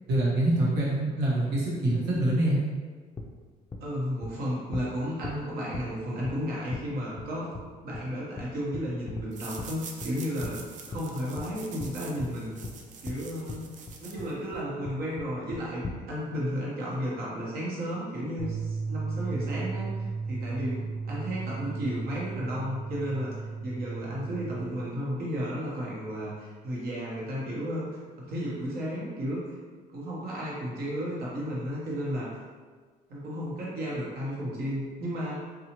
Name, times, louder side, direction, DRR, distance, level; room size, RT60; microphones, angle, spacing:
voice 1, 0.1-2.6, right 1 dB, 85° right, -5 dB, 0.9 m, -25 dB
sound 1, 3.2-3.3 3.7-3.8 4.2-4.3 4.7-4.9 5.2-5.4 5.7-5.8 6.2-6.4 6.7-6.8 7.2-7.3 7.5-7.6 7.9-8.0 8.4-8.5 8.7-9.3 9.6-9.7 10.0-10.1 10.4-10.6 10.9-11.0 11.4-11.5 11.8-11.9 12.2-12.3 12.6-12.7 13.1-13.2 13.5-13.6 13.9-14.3 14.5-14.6 14.8-15.3 15.5-16.0, left 3 dB, 20° left, 0.3 m, -37 dB
voice 2, 3.8-7.5 7.8-12.5 13.0-13.6 14.0-27.9 28.2-29.4 29.9-32.3 33.1-35.5, equal, 65° right, -6 dB, 1.1 m, -33 dB
sound 2, 9.3-14.6, right 5 dB, 50° right, 0.4 m, -46 dB
sound 3, 18.4-24.6, right 4 dB, 20° right, 0.7 m, -35 dB
2.7 x 2.3 x 2.9 m, 1.5 s
cardioid pair, 110°, 17 cm